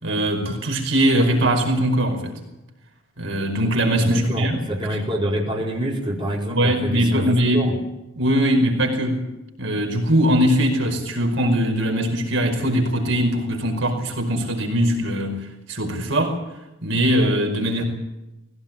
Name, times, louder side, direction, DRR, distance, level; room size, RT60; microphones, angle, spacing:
voice 1, 0.0-2.4 3.2-4.6 6.5-7.7 8.2-9.3 9.6-15.4 15.7-16.4 16.8-17.8, equal, 65° right, 3 dB, 5.1 m, -21 dB
voice 2, 4.0-7.7, equal, 25° right, -2 dB, 4.6 m, -26 dB
20.5 x 17.5 x 8.9 m, 0.95 s
head